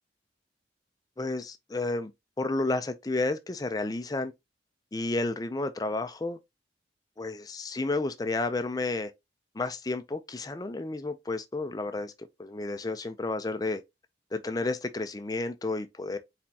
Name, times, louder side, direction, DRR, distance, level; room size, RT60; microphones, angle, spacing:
voice 1, 1.2-2.1 2.4-4.3 4.9-6.4 7.2-9.1 9.5-12.1 12.4-13.8 14.3-16.2, left 2 dB, 20° left, 0.4 m, -31 dB
4.3 x 4.3 x 2.7 m
head